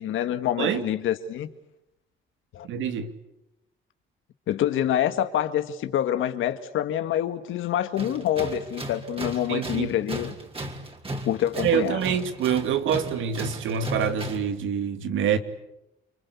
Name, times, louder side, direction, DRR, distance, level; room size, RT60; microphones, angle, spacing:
voice 1, 0.0-1.5 2.5-2.7 4.5-10.3 11.3-12.0, left 11 dB, 80° left, 1.9 m, -26 dB
voice 2, 2.6-3.1 9.5-9.9 11.6-15.4, right 8 dB, 80° right, 2.6 m, -26 dB
Tools, 8.0-14.6, right 1 dB, 30° right, 4.8 m, -36 dB
29.5 x 23.5 x 8.5 m
cardioid pair, 90°, 20 cm